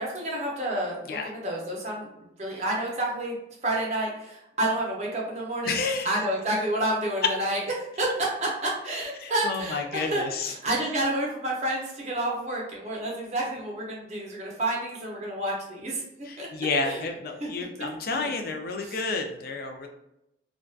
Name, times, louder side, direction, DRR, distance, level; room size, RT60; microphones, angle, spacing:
voice 1, 0.0-2.1 2.4-3.3 3.6-5.7 6.0-7.6 8.0-16.0 16.4-16.5 16.8-17.0 17.4-17.5 18.1-18.3 18.8-19.0, right 1 dB, 35° right, -3 dB, 0.6 m, -29 dB
voice 2, 5.7-6.2 9.2-10.5 16.2-19.9, left 4 dB, 50° left, 4 dB, 0.3 m, -30 dB
2.5 x 2.2 x 2.3 m, 0.85 s
head